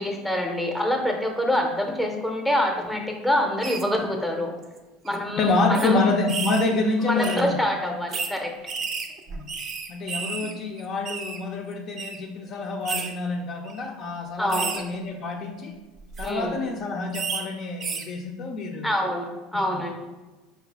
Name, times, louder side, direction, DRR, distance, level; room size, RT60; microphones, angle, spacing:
voice 1, 0.0-4.5 5.0-6.0 7.1-8.7 14.4-14.8 16.2-16.6 18.8-19.9, left 1 dB, ahead, 2 dB, 0.6 m, -26 dB
sound 1, 3.6-3.8 4.6-4.8 5.0-5.1 5.7-5.9 6.3-6.7 7.2-7.4 8.1-8.3 8.7-10.5 10.8-11.4 12.0-12.2 12.8-13.1 13.6-13.8 14.5-14.8 16.0-16.3 17.1-17.4 17.8-18.0, right 5 dB, 40° right, 0.4 m, -31 dB
voice 2, 5.4-7.6 7.8-7.9 9.3-9.5 9.9-15.7 16.2-18.9 19.7-19.8, left 3 dB, 45° left, 2 dB, 0.4 m, -27 dB
4.8 x 2.3 x 3.4 m, 1.2 s
supercardioid pair, 120°, 0 cm